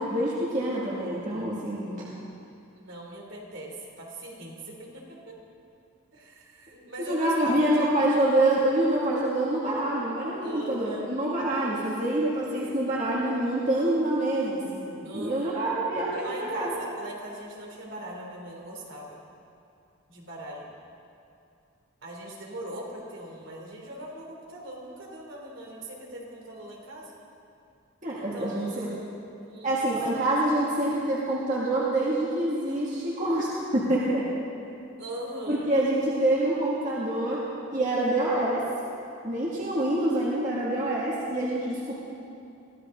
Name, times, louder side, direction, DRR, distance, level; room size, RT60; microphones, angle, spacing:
voice 1, 0.0-2.0 7.1-16.7 28.0-28.9 29.6-34.2 35.5-37.5 37.7-38.7 39.2-41.9, right 1 dB, 35° right, -7 dB, 2.4 m, -26 dB
voice 2, 2.8-5.4 6.1-8.0 10.4-11.1 15.0-15.5 16.1-19.2 20.1-20.7 22.0-27.1 28.1-29.2 29.5-29.9 35.0-35.7, right 1 dB, 60° right, -2 dB, 3.2 m, -40 dB
23.0 x 16.0 x 3.9 m, 2.6 s
head